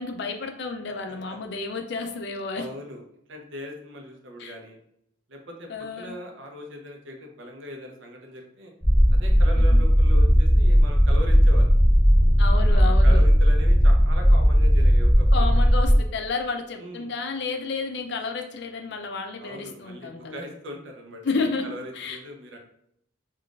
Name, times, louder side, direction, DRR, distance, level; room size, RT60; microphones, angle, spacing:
voice 1, 0.0-2.7 4.4-4.6 5.7-6.2 9.6-9.8 12.4-13.2 15.3-20.4 21.2-21.6 21.9-22.2, left 4 dB, 60° left, 6 dB, 0.4 m, -31 dB
voice 2, 2.5-3.0 3.3-4.8 5.3-5.7 6.0-8.7 9.2-11.7 12.7-15.5 16.8-17.1 19.4-22.6, equal, 70° right, 2 dB, 0.6 m, -39 dB
sound 1, 8.8-16.0, equal, 5° right, 0.6 m, -17 dB
3.7 x 2.4 x 2.3 m, 0.71 s
head